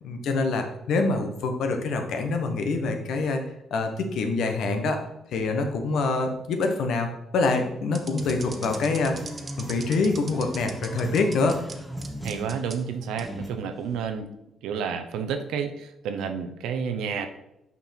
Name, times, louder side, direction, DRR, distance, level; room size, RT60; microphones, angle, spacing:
voice 1, 0.0-3.4 3.7-5.0 5.3-9.2 9.6-11.6, left 3 dB, 75° left, 5 dB, 1.1 m, -25 dB
sound 1, 7.9-11.7 12.0-12.7 13.2-13.3 13.9-14.2, right 4 dB, 35° right, 1.0 m, -40 dB
sound 2, 8.2-13.5, equal, ahead, 1.1 m, -38 dB
voice 2, 12.2-14.3 14.6-17.3, right 6 dB, 90° right, 7 dB, 0.8 m, -30 dB
6.1 x 5.4 x 4.4 m, 0.86 s
cardioid pair, 90°, 0 cm